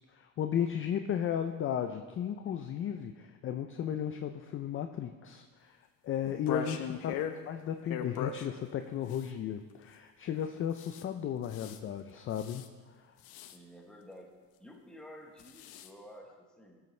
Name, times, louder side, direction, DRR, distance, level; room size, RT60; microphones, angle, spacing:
voice 1, 0.1-7.1 7.5-13.1, left 9 dB, 35° left, 7 dB, 0.4 m, -35 dB
sound 1, 6.2-7.4 7.8-8.5 9.1-9.3 10.7-11.0 11.4-11.8 12.3-12.7 13.2-13.6 15.4-15.9, left 8 dB, 75° left, 0.8 m, -38 dB
voice 2, 13.5-14.3 14.6-16.8, equal, ahead, 1 dB, 1.1 m, -52 dB
13.0 x 8.1 x 3.2 m, 1.4 s
cardioid pair, 140°, 37 cm